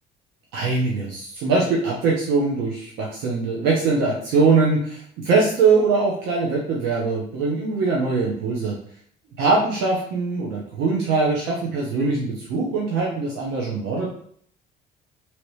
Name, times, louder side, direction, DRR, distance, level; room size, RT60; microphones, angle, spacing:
voice 1, 0.5-8.8 9.4-14.1, right 4 dB, 90° right, -3 dB, 0.8 m, -22 dB
2.9 x 2.9 x 3.1 m, 0.62 s
cardioid pair, 110°, 17 cm